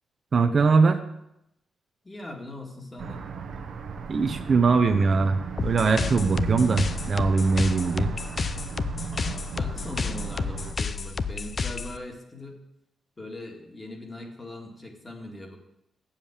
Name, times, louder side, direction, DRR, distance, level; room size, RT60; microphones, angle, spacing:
voice 1, 0.3-1.0 4.1-8.1, right 4 dB, 45° right, 7 dB, 0.8 m, -21 dB
voice 2, 2.0-3.3 9.1-12.6 13.2-15.6, left 1 dB, 20° left, 2 dB, 2.0 m, -40 dB
sound 1, 3.0-10.8, right 6 dB, 70° right, 1.0 m, -35 dB
sound 2, 5.6-12.0, left 5 dB, 40° left, 0.5 m, -31 dB
8.2 x 7.3 x 7.3 m, 0.83 s
cardioid pair, 105°, 0 cm